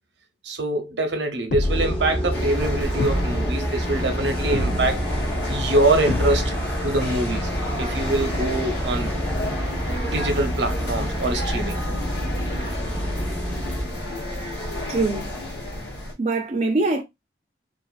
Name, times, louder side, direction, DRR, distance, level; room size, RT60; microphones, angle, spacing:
voice 1, 0.4-5.0 5.5-6.5 6.8-7.5 7.8-9.1 10.0-12.0, right 2 dB, 90° right, 0.8 m, -24 dB
sound 1, 1.5-2.1 3.0-3.6 4.5-5.1 6.1-6.7, left 2 dB, 55° left, 0.4 m, -27 dB
sound 2, 1.6-13.8, equal, 5° left, 0.7 m, -28 dB
sound 3, 2.3-16.1, left 1 dB, 80° left, 1.0 m, -31 dB
voice 2, 13.9-14.6 14.9-15.3 16.2-17.0, right 3 dB, 40° right, 0.5 m, -25 dB
2.5 x 2.4 x 2.4 m
head